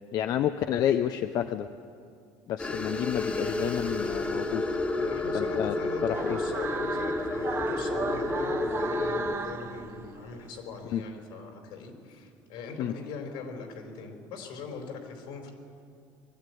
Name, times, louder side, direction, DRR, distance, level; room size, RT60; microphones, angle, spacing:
voice 1, 0.1-1.7 2.5-4.6 5.3-5.8 6.0-6.4 10.9-11.0 12.8-12.9, left 10 dB, 50° left, 9 dB, 0.6 m, -29 dB
sound 1, 2.6-9.3, left 2 dB, 15° left, 1.6 m, -30 dB
voice 2, 5.0-15.5, left 4 dB, 80° left, 4 dB, 4.1 m, -41 dB
sound 2, 6.1-10.5, right 5 dB, 30° right, 1.1 m, -35 dB
22.0 x 13.0 x 9.2 m, 2.3 s
cardioid pair, 135°, 8 cm